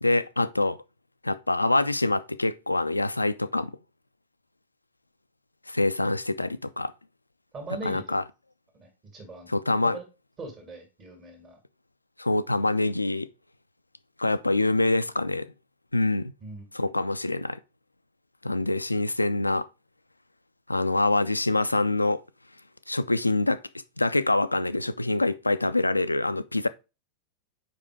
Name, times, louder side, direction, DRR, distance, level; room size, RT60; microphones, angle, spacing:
voice 1, 0.0-0.8 1.2-3.7 5.7-6.9 7.8-8.2 9.5-10.0 12.2-13.3 14.2-15.5 15.9-16.3 16.7-17.6 18.4-19.7 20.7-22.2 22.9-23.6 24.0-26.7, left 2 dB, 85° left, 0.4 m, -25 dB
voice 2, 7.5-8.2 8.7-9.5 9.8-10.0 10.4-11.6 16.4-16.7, right 3 dB, 30° right, 2.0 m, -40 dB
5.1 x 4.9 x 4.7 m
figure-of-eight pair, 90°, 0 cm